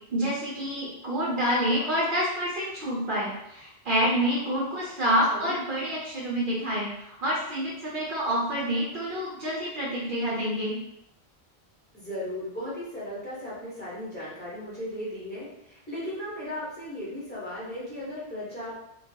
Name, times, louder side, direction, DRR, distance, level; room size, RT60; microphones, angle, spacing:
voice 1, 0.1-10.8, equal, 60° right, -5 dB, 0.7 m, -28 dB
voice 2, 5.3-5.6 11.9-18.7, left 1 dB, 10° left, -9 dB, 0.9 m, -36 dB
2.3 x 2.2 x 2.7 m, 0.78 s
omnidirectional pair, 1.1 m